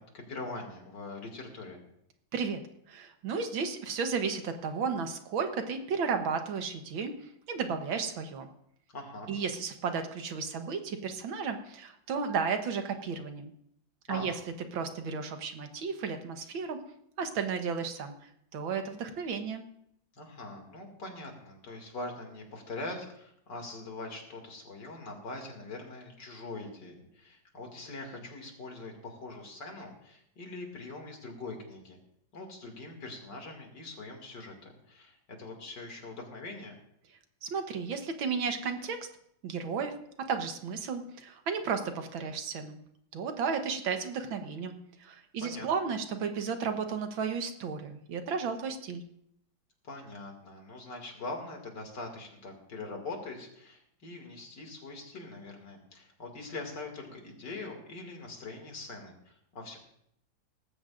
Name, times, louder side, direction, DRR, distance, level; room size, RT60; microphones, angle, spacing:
voice 1, 0.0-1.8 8.9-9.3 14.1-14.4 20.1-32.0 32.3-36.7 45.4-45.7 49.8-59.8, left 2 dB, 60° left, 2 dB, 3.0 m, -42 dB
voice 2, 2.9-8.5 9.3-13.5 14.1-14.3 14.7-16.8 17.2-19.7 37.4-39.1 39.4-42.8 43.1-49.0, right 5 dB, 85° right, 6 dB, 1.9 m, -33 dB
19.0 x 15.0 x 2.6 m, 0.73 s
omnidirectional pair, 2.1 m